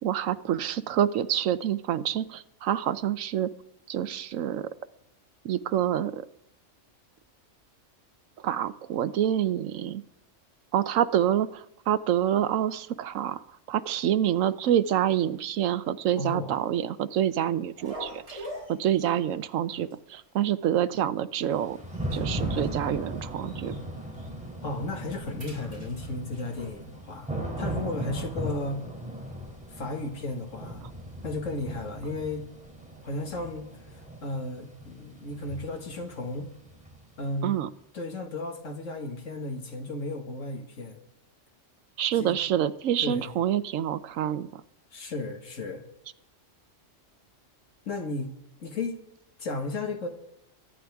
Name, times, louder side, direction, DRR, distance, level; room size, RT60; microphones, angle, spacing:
voice 1, 0.0-3.5 3.9-4.7 5.4-6.2 8.4-10.0 10.7-13.4 13.7-21.8 22.1-23.7 37.4-37.7 42.0-44.6, right 10 dB, 90° right, 14 dB, 1.1 m, -27 dB
voice 2, 16.1-16.5 24.6-27.3 27.6-28.8 29.7-30.8 31.2-32.5 33.0-33.7 34.2-36.5 37.2-37.5 37.9-41.0 42.2-42.4 43.0-43.3 44.9-45.8 47.9-48.3 48.6-49.0 49.4-50.1, left 2 dB, 75° left, 4 dB, 2.0 m, -34 dB
sound 1, 17.8-19.4 19.7-19.9 20.2-20.3 20.9-21.4 21.7-23.8 24.1-24.3 24.7-26.7, equal, 55° right, 4.9 m, -45 dB
Thunder / Rain, 21.5-37.3, right 1 dB, 5° right, 3.2 m, -37 dB
23.5 x 10.0 x 3.5 m, 0.80 s
omnidirectional pair, 1.3 m